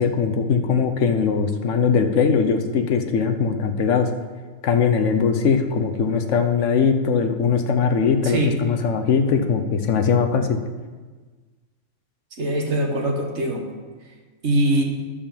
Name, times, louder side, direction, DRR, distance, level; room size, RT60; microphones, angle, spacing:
voice 1, 0.0-4.1 4.6-10.6, left 6 dB, 60° left, 7 dB, 1.1 m, -20 dB
voice 2, 8.2-8.5 12.4-13.6 14.4-14.8, right 1 dB, 50° right, 1 dB, 1.7 m, -22 dB
11.0 x 5.3 x 7.0 m, 1.4 s
omnidirectional pair, 1.5 m